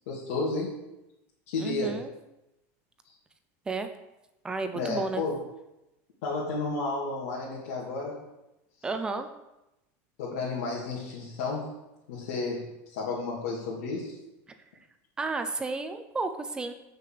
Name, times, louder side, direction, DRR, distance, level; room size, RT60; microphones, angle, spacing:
voice 1, 0.1-0.8 1.5-2.0 4.7-5.4 6.2-8.2 10.2-11.7 12.1-14.2, left 3 dB, 80° left, -6 dB, 2.5 m, -32 dB
voice 2, 1.6-2.1 3.7-3.9 4.4-5.2 8.8-9.3 14.5-14.6 15.2-16.7, right 3 dB, 10° right, 8 dB, 0.6 m, -32 dB
6.8 x 6.6 x 7.6 m, 0.92 s
supercardioid pair, 165°, 8 cm